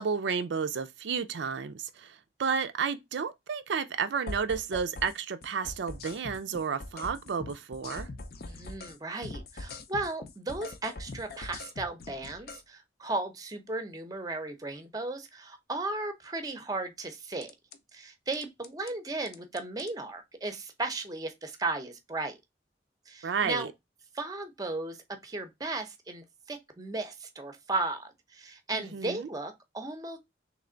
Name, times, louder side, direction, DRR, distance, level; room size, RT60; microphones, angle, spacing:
voice 1, 0.0-8.1 23.2-23.7 28.7-29.3, right 6 dB, 80° right, 0.4 m, -32 dB
sound 1, 4.3-5.2 5.4-9.0 9.2-12.6 17.4-17.8 18.3-18.9 19.3-19.9, left 3 dB, 55° left, 0.5 m, -42 dB
voice 2, 8.5-17.5 17.9-22.3 23.1-23.7 24.1-30.2, right 2 dB, 20° right, 0.6 m, -35 dB
3.3 x 3.1 x 3.8 m
head